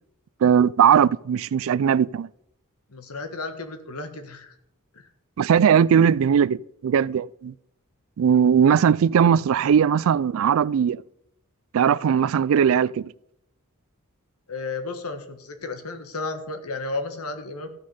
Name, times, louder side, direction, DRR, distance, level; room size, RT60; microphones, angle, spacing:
voice 1, 0.4-2.3 5.4-7.5 8.2-11.0 11.7-13.1, right 8 dB, 65° right, 0.3 m, -19 dB
voice 2, 2.9-4.5 4.9-5.0 14.5-17.7, left 3 dB, 90° left, 1.4 m, -33 dB
14.5 x 6.3 x 5.6 m
head